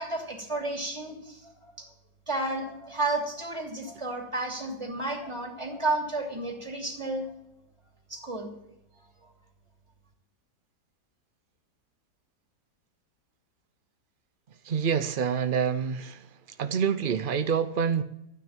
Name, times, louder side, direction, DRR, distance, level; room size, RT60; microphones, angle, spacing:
voice 1, 0.0-1.5 1.8-1.9 2.3-7.2 8.1-8.5, right 2 dB, 15° right, 0 dB, 3.0 m, -32 dB
voice 2, 14.6-16.3 16.6-18.0, right 7 dB, 85° right, 10 dB, 0.4 m, -27 dB
13.0 x 9.4 x 7.3 m, 0.81 s
omnidirectional pair, 1.9 m